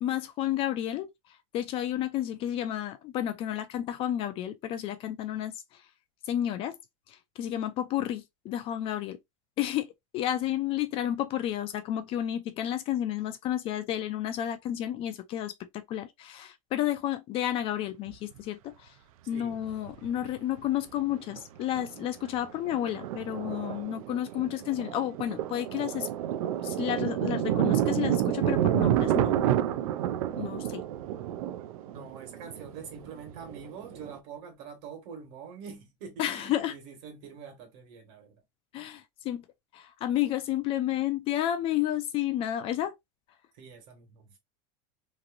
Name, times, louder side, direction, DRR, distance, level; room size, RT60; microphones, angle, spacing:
voice 1, 0.0-1.1 1.5-5.8 6.3-6.8 7.1-9.2 9.6-18.9 19.3-26.1 26.6-29.4 30.4-30.8 36.2-36.8 38.7-39.4 39.7-43.0, left 12 dB, 30° left, 0.3 m, -31 dB
Thunder, 18.1-18.2 19.5-20.3 20.6-20.7 21.1-21.4 21.8-34.2, right 11 dB, 85° right, 0.4 m, -29 dB
voice 2, 31.8-38.4 43.5-44.4, right 6 dB, 55° right, 1.4 m, -45 dB
3.0 x 2.5 x 2.4 m
supercardioid pair, 150°, 18 cm